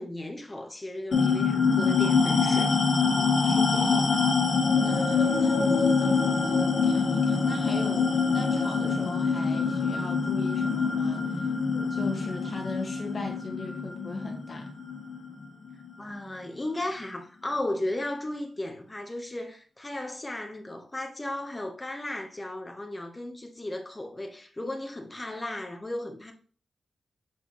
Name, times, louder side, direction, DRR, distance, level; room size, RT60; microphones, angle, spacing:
voice 1, 0.0-2.8 16.0-26.3, left 1 dB, 15° left, 1.1 m, -35 dB
sound 1, 1.1-15.9, left 5 dB, 65° left, 1.8 m, -25 dB
voice 2, 3.0-4.3 4.8-14.7, left 3 dB, 45° left, 1.7 m, -37 dB
7.4 x 4.5 x 3.1 m
wide cardioid pair, 135°, 0 cm